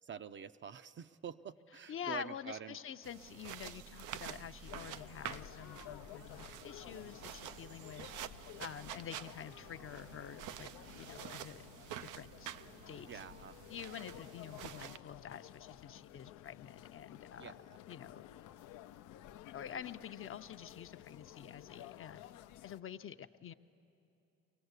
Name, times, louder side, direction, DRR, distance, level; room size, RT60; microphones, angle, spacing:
voice 1, 0.0-2.8 13.1-13.6 17.4-17.8, right 7 dB, 40° right, 12 dB, 0.5 m, -47 dB
voice 2, 1.9-8.1 8.6-10.7 11.0-11.6 12.0-12.5 12.9-13.1 13.7-17.6 17.9-18.3 19.5-22.2 22.6-23.5, left 8 dB, 45° left, 10 dB, 0.6 m, -47 dB
sound 1, 3.0-15.0, right 11 dB, 90° right, 0.5 m, -49 dB
sound 2, 3.5-11.2, right 3 dB, 70° right, 1.1 m, -61 dB
sound 3, 4.6-22.8, left 13 dB, 90° left, 0.5 m, -54 dB
24.0 x 17.5 x 8.1 m, 2.8 s
cardioid pair, 90°, 30 cm